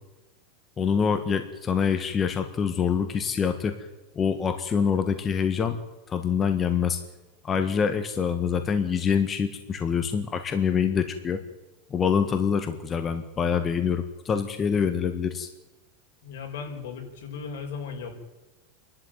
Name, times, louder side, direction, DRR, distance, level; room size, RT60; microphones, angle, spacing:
voice 1, 0.8-3.9 4.1-5.8 6.1-7.0 7.4-11.4 11.9-15.5, left 6 dB, 25° left, 8 dB, 1.4 m, -25 dB
voice 2, 16.2-18.1, left 5 dB, 75° left, 3 dB, 5.4 m, -36 dB
27.5 x 12.0 x 9.2 m, 1.1 s
supercardioid pair, 140°, 0 cm